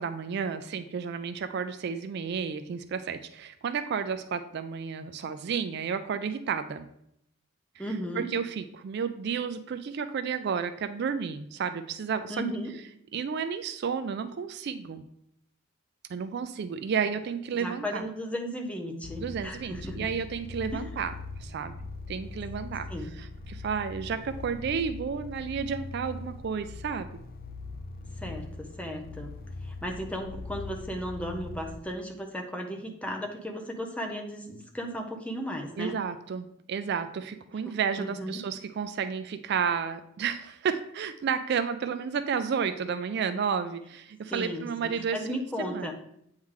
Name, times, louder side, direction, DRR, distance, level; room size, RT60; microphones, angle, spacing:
voice 1, 0.0-6.9 8.2-12.4 13.1-15.0 16.1-18.0 19.2-21.1 21.4-21.7 22.1-22.9 23.2-27.1 35.8-45.9, right 6 dB, 55° right, 10 dB, 0.3 m, -32 dB
voice 2, 7.8-8.3 12.3-12.7 17.6-20.1 20.7-20.9 22.9-23.1 28.2-29.3 29.6-36.0 37.6-38.4 44.3-45.9, equal, 5° left, 2 dB, 0.7 m, -35 dB
sound 1, 19.0-31.8, left 3 dB, 45° left, 0.4 m, -41 dB
8.3 x 3.2 x 3.7 m, 0.74 s
head